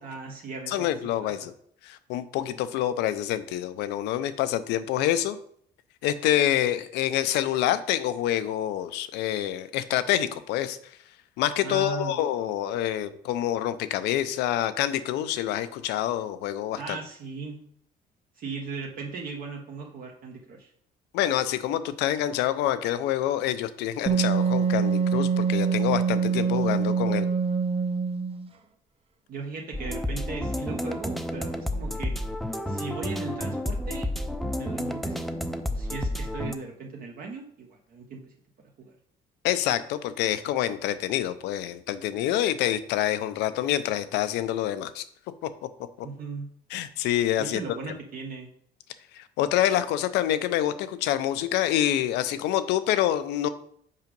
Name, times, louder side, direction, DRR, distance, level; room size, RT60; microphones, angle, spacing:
voice 1, 0.0-0.9 1.2-1.3 11.6-12.2 16.8-17.6 18.4-20.7 29.3-32.1 32.7-34.1 34.5-35.2 35.7-38.3 38.8-38.9 46.0-46.5 47.4-48.5, right 4 dB, 60° right, 0 dB, 1.1 m, -37 dB
voice 2, 0.7-1.5 1.8-5.4 6.0-10.8 11.4-17.0 21.1-27.3 39.4-45.0 46.7-47.8 49.1-53.5, left 12 dB, 90° left, 12 dB, 0.6 m, -27 dB
Wind instrument woodwind instrument, 24.1-28.5, right 6 dB, 35° right, 0.7 m, -24 dB
sound 1, 29.7-36.6, left 1 dB, ahead, 0.6 m, -31 dB
5.5 x 5.0 x 5.3 m, 0.65 s
cardioid pair, 110°, 17 cm